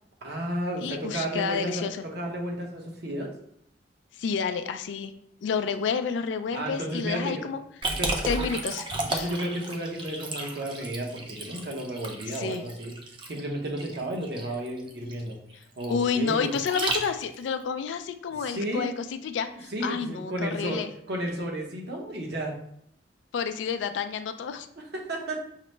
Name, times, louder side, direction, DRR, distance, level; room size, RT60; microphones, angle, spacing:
voice 1, 0.2-3.3 6.5-7.5 8.0-8.6 9.1-12.9 13.3-15.4 15.8-16.5 18.4-18.9 19.7-22.6 24.8-25.4, right 1 dB, 65° right, 0 dB, 0.8 m, -33 dB
voice 2, 0.8-2.0 4.2-5.1 5.4-7.6 8.3-8.8 9.1-9.3 12.3-12.6 15.9-20.9 23.3-24.7, left 6 dB, 85° left, 9 dB, 0.3 m, -30 dB
Liquid, 7.8-17.5, right 2 dB, 30° right, 0.5 m, -33 dB
5.7 x 2.0 x 3.2 m, 0.69 s
head